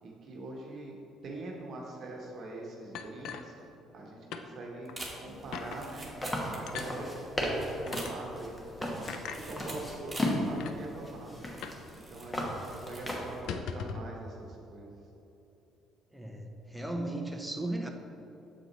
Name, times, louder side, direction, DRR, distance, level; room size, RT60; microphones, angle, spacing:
voice 1, 0.0-3.5 3.9-6.1 6.5-11.4 11.9-15.0, right 2 dB, 55° right, -2 dB, 1.1 m, -43 dB
sound 1, 2.9-4.0 4.3-4.5 4.9-5.0 5.5-5.8 6.7-6.9 7.9-8.1 9.1-9.4 10.2-10.3 10.5-10.8 11.6-11.9 12.1-12.2 12.6-12.8 13.3-14.1, left 6 dB, 75° left, 0.4 m, -40 dB
sound 2, 4.8-7.0 7.3-7.4 7.8-8.5 9.3-10.4 10.9-11.0 11.5-12.3 12.6-13.1 13.4-13.7, right 2 dB, 20° right, 1.3 m, -45 dB
sound 3, 5.3-13.4, equal, 15° left, 1.1 m, -36 dB
voice 2, 16.1-17.9, right 1 dB, ahead, 2 dB, 0.7 m, -36 dB
6.9 x 4.3 x 4.0 m, 3.0 s
cardioid pair, 90°, 0 cm